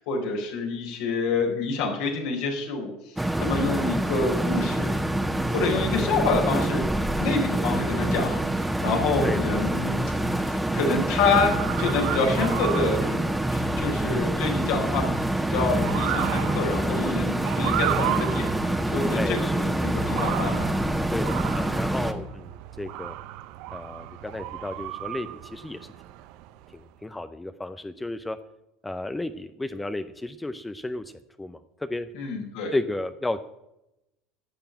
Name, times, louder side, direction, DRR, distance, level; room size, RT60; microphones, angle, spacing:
voice 1, 0.0-4.9 5.5-6.9 7.2-10.0 10.4-15.1 15.4-20.7 32.1-32.7, left 3 dB, 70° left, 1 dB, 4.1 m, -27 dB
sound 1, 3.2-22.1, right 1 dB, 5° right, 1.4 m, -26 dB
voice 2, 9.2-9.6 19.1-19.6 21.1-23.1 23.7-25.8 26.7-28.4 28.8-31.1 31.4-32.1 32.7-33.5, left 2 dB, 10° left, 10 dB, 0.7 m, -33 dB
Motor vehicle (road) / Siren, 11.2-26.8, right 15 dB, 65° right, 0.7 m, -35 dB
11.5 x 6.9 x 8.8 m, 0.89 s
hypercardioid pair, 95°, 0 cm